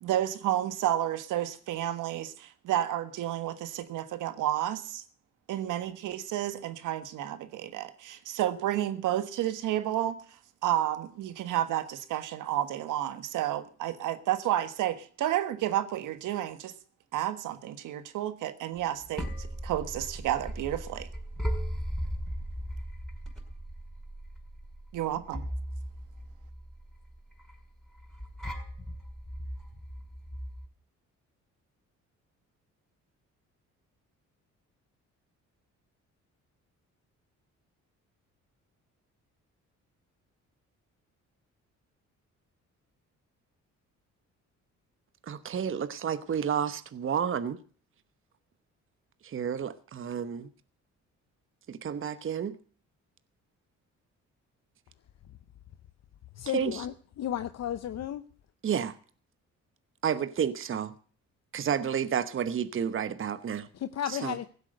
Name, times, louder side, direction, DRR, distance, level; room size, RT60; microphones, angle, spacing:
voice 1, 0.0-5.0 5.5-10.1 10.6-16.7 17.1-21.1 24.9-25.5, right 12 dB, 85° right, 1.5 m, -31 dB
sound 1, 18.8-30.7, equal, ahead, 5.7 m, -38 dB
voice 2, 45.3-47.6 49.2-50.5 51.7-52.6 56.5-56.8 58.6-58.9 60.0-60.9 61.5-63.7 64.1-64.5, right 8 dB, 45° right, 1.0 m, -31 dB
voice 3, 56.4-58.2 63.7-64.5, left 11 dB, 60° left, 0.8 m, -33 dB
16.0 x 8.2 x 7.9 m
cardioid pair, 90°, 30 cm